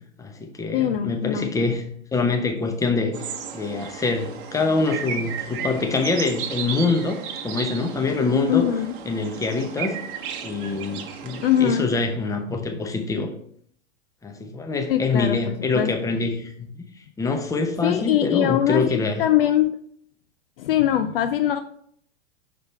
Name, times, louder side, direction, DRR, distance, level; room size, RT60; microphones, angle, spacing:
voice 1, 0.2-1.9 2.1-8.7 9.1-10.0 10.4-13.3 14.2-16.9 17.2-19.2, left 3 dB, 10° left, 5 dB, 0.8 m, -25 dB
voice 2, 0.7-1.5 8.5-8.9 11.4-11.9 14.9-15.9 17.8-19.8 20.6-21.6, left 11 dB, 50° left, 9 dB, 0.5 m, -22 dB
sound 1, 3.1-11.8, right 7 dB, 45° right, 0.9 m, -34 dB
5.9 x 5.1 x 4.5 m, 0.65 s
figure-of-eight pair, 100°, 36 cm